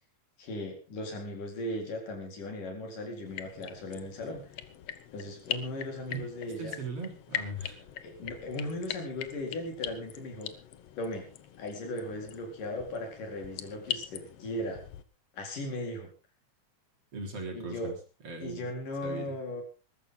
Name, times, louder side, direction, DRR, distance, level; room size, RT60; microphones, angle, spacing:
voice 1, 0.4-4.4 5.1-6.8 8.0-10.5 11.0-11.3 11.6-14.8 15.3-16.1 17.5-17.9 18.4-19.6, left 1 dB, 85° left, 3 dB, 5.9 m, -37 dB
sound 1, 3.3-15.0, left 10 dB, 60° left, 1.8 m, -42 dB
voice 2, 6.6-7.8 17.1-17.9 18.2-18.8 19.0-19.3, right 2 dB, 45° right, 1 dB, 4.7 m, -39 dB
21.0 x 13.5 x 3.9 m, 0.33 s
omnidirectional pair, 3.7 m